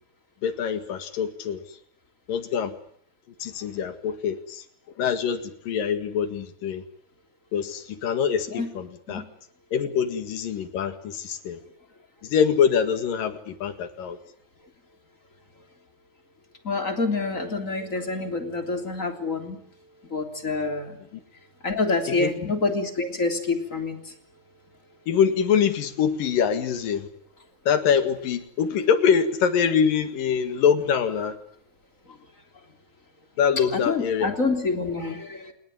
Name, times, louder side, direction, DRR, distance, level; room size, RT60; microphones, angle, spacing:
voice 1, 0.4-1.6 2.3-2.7 3.4-4.6 5.0-6.8 7.5-9.2 9.7-11.6 12.2-14.2 22.2-22.3 25.1-27.1 27.7-31.3 33.4-34.4, left 7 dB, 75° left, 10 dB, 3.6 m, -24 dB
voice 2, 16.6-19.6 20.1-21.0 21.6-24.1 33.7-35.5, left 3 dB, 20° left, 6 dB, 3.4 m, -27 dB
27.5 x 20.0 x 9.4 m, 0.64 s
omnidirectional pair, 4.0 m